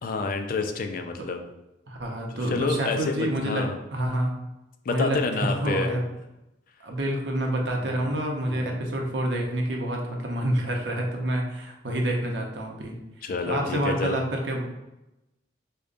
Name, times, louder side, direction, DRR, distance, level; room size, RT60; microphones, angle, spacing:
voice 1, 0.0-1.4 2.3-3.8 4.8-5.9 7.8-8.1 8.5-8.9 13.2-14.2, left 3 dB, 50° left, 6 dB, 0.3 m, -29 dB
voice 2, 1.9-4.3 4.9-6.0 6.8-13.0 13.4-14.7, right 1 dB, 65° right, 1 dB, 0.6 m, -28 dB
5.0 x 2.2 x 2.5 m, 0.94 s
head